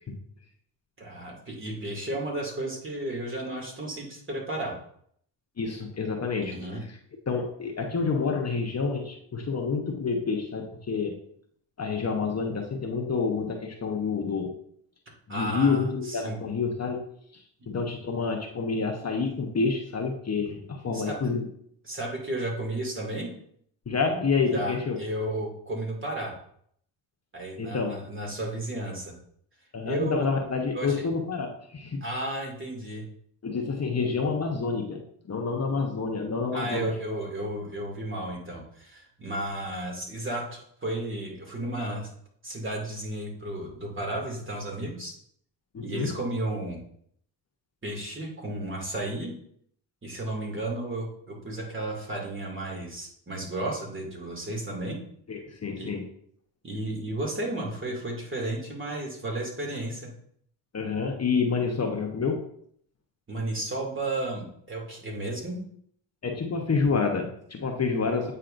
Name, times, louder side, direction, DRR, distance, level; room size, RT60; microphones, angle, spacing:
voice 1, 1.0-4.8 6.4-6.8 15.3-16.4 20.9-21.3 21.8-23.3 24.5-26.3 27.3-29.1 29.8-30.3 30.7-31.0 32.0-33.0 36.5-42.1 42.4-45.1 45.8-46.8 47.8-49.3 50.0-55.0 55.8-55.9 56.6-60.1 63.3-65.6, right 1 dB, 25° right, -1 dB, 2.4 m, -33 dB
voice 2, 5.6-6.5 7.3-11.2 11.8-14.6 15.3-17.0 17.3-17.4 17.7-21.5 23.9-25.0 27.6-27.9 29.7-32.0 33.4-35.0 35.3-36.9 45.7-46.1 55.3-56.0 60.7-62.4 66.2-68.3, left 4 dB, 35° left, 2 dB, 1.0 m, -28 dB
8.7 x 5.6 x 2.6 m, 0.66 s
supercardioid pair, 65°, 44 cm